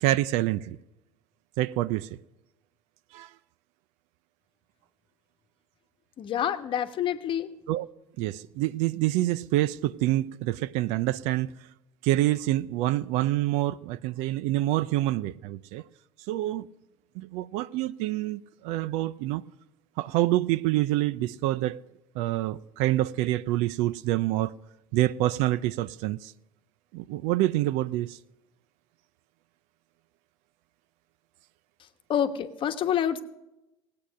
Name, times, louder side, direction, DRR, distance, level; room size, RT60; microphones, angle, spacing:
voice 1, 0.0-0.8 1.6-2.1 3.1-3.3 7.7-7.9 8.2-11.5 12.0-15.8 16.3-16.7 17.2-19.4 20.0-21.8 22.2-24.5 24.9-26.3 26.9-28.2, right 15 dB, 65° right, 0.5 m, -26 dB
voice 2, 6.2-7.5 32.1-33.2, left 9 dB, 40° left, 1.1 m, -27 dB
17.0 x 8.6 x 6.3 m
hypercardioid pair, 85°, 12 cm